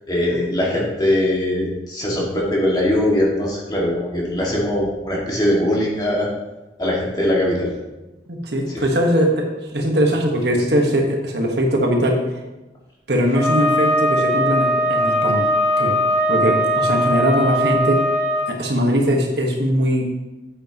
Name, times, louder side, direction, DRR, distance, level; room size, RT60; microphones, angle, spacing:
voice 1, 0.1-6.3 6.8-7.7 8.7-8.8, left 1 dB, 25° left, -4 dB, 2.0 m, -21 dB
voice 2, 8.3-12.2 13.1-15.5 15.8-16.0 16.3-18.0 18.5-20.0, equal, 65° right, 1 dB, 1.3 m, -20 dB
Wind instrument woodwind instrument, 13.3-18.5, equal, 25° right, 2.2 m, -19 dB
9.0 x 8.3 x 3.0 m, 1.1 s
head